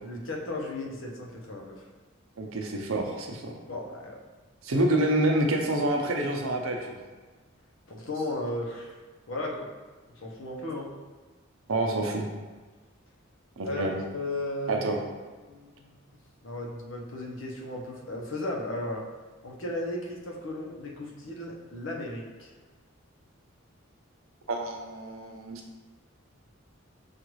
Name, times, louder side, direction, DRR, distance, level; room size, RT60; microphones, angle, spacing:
voice 1, 0.0-1.8 3.7-4.2 4.8-4.9 7.9-9.0 9.3-9.7 10.2-10.9 13.6-14.9 15.4-16.0 16.4-19.0 19.4-22.5, left 1 dB, 65° left, -1 dB, 0.8 m, -35 dB
voice 2, 2.4-3.5 4.6-7.0 11.7-12.3 13.6-14.0 14.7-15.0 24.5-25.6, right 1 dB, 85° right, 2 dB, 0.7 m, -27 dB
6.3 x 2.5 x 3.1 m, 1.3 s
head